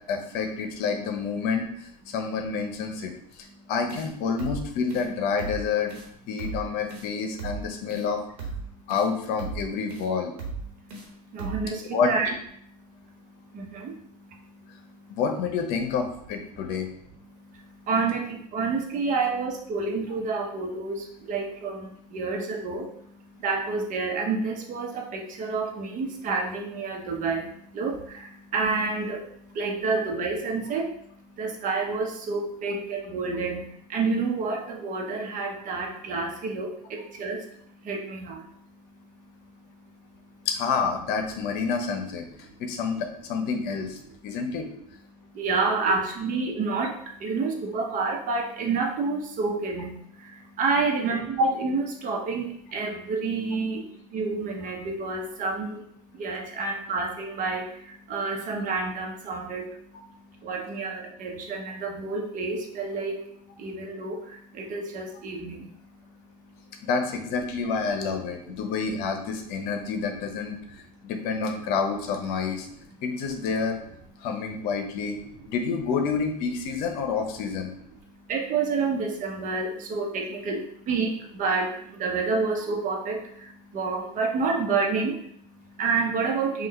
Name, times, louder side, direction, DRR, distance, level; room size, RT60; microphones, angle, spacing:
voice 1, 0.1-5.9 6.3-8.2 8.9-10.3 11.9-12.1 15.1-16.9 40.5-42.3 42.6-44.7 66.8-72.7 73.0-73.8 74.2-75.2 75.5-77.7, left 5 dB, 50° left, 4 dB, 0.8 m, -28 dB
sound 1, 3.9-4.1 4.4-4.6 4.9-5.1 5.4-5.6 5.9-6.1 6.4-6.6 6.9-7.1 7.4-7.6 7.9-8.1 8.4-8.6 8.9-9.1 9.4-9.6 9.9-10.1 10.4-10.6 10.9-11.1 11.4-11.6, right 4 dB, 70° right, 1.2 m, -35 dB
voice 2, 10.7-15.2 16.7-16.8 17.2-40.5 42.5-42.6 45.1-66.9 70.9-71.1 78.1-86.7, right 4 dB, 40° right, 2 dB, 1.1 m, -30 dB
5.5 x 2.5 x 3.2 m, 0.68 s
hypercardioid pair, 85°, 20 cm